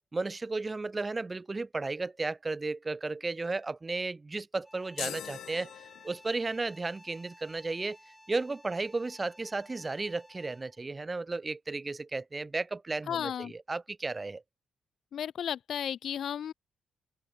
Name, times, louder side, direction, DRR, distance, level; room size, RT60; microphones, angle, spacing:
voice 1, 0.1-5.7 6.0-8.0 8.3-14.4, right 3 dB, 25° right, 1.2 m, -34 dB
sound 1, 4.6-10.8, left 1 dB, 5° left, 7.6 m, -56 dB
sound 2, 5.0-6.5, left 12 dB, 85° left, 2.0 m, -41 dB
voice 2, 13.1-13.5 15.1-16.5, left 9 dB, 65° left, 1.3 m, -34 dB
cardioid pair, 110°, 0 cm